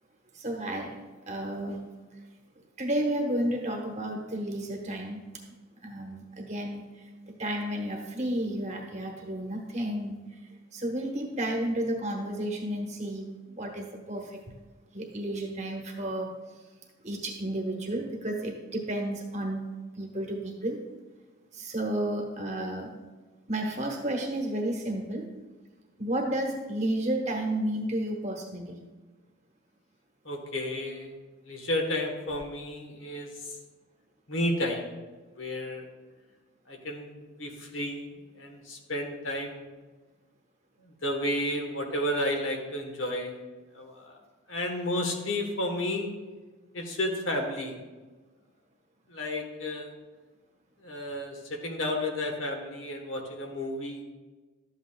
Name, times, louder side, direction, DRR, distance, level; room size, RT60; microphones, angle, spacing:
voice 1, 0.3-1.0 1.3-1.8 2.8-5.2 5.8-6.8 7.4-10.2 10.7-14.4 14.9-16.3 17.0-19.7 20.0-20.8 21.5-22.9 23.5-25.3 26.0-28.8, right 1 dB, 30° right, 1 dB, 1.1 m, -32 dB
voice 2, 30.2-31.1 31.4-33.5 34.3-34.9 35.4-35.9 36.7-39.7 40.8-43.3 43.7-44.2 44.5-46.1 46.7-47.7 49.1-49.9 50.8-54.0, left 1 dB, 60° left, 3 dB, 1.2 m, -32 dB
12.5 x 8.1 x 2.3 m, 1.3 s
head